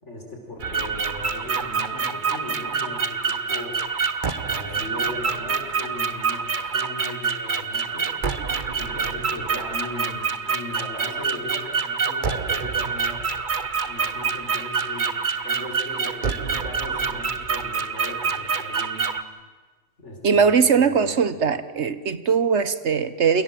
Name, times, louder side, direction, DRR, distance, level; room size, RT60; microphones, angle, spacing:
voice 1, 0.0-3.9 4.3-8.2 8.7-13.2 13.9-19.1 20.0-20.5 20.8-21.6, left 2 dB, 75° left, 1 dB, 5.4 m, -38 dB
sound 1, 0.6-19.2, right 5 dB, 45° right, 1.2 m, -26 dB
voice 2, 20.2-23.4, right 6 dB, 70° right, 13 dB, 1.5 m, -20 dB
29.0 x 24.5 x 7.7 m, 1.3 s
omnidirectional pair, 1.2 m